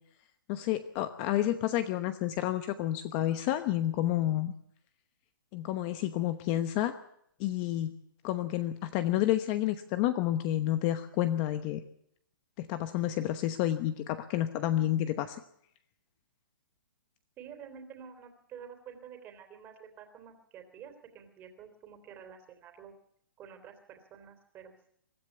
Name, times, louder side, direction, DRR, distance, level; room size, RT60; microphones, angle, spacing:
voice 1, 0.5-4.5 5.5-6.9 7.4-7.9 8.2-11.8 12.6-15.4, left 13 dB, 25° left, 11 dB, 1.0 m, -30 dB
voice 2, 17.4-22.9 23.4-24.9, right 7 dB, 15° right, 7 dB, 3.4 m, -49 dB
24.0 x 13.5 x 8.1 m, 0.72 s
hypercardioid pair, 160°, 11 cm